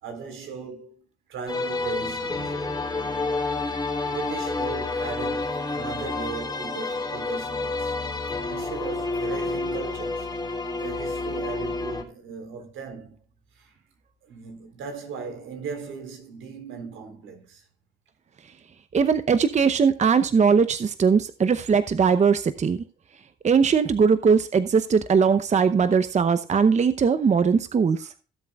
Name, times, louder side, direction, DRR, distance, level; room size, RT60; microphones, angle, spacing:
voice 1, 0.0-1.0 1.3-2.6 4.0-8.0 8.5-10.3 10.7-13.2 13.5-13.7 14.2-17.7 28.0-28.1, right 5 dB, 80° right, 3.9 m, -37 dB
sound 1, 1.5-12.0, left 3 dB, 20° left, 2.8 m, -29 dB
voice 2, 18.9-22.8 23.4-28.1, right 6 dB, 35° right, 0.8 m, -20 dB
17.0 x 7.7 x 2.3 m
cardioid pair, 90°, 20 cm